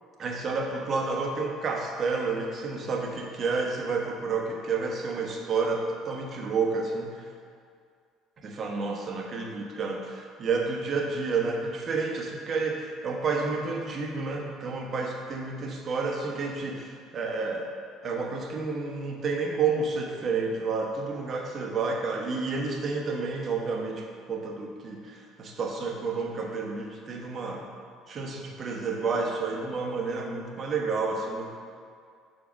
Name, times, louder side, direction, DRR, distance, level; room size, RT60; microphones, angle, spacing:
voice 1, 0.2-7.3 8.4-17.7 18.0-27.6 28.1-31.5, right 4 dB, 45° right, 1 dB, 1.1 m, -30 dB
6.9 x 4.2 x 5.2 m, 2.2 s
hypercardioid pair, 70°, 0 cm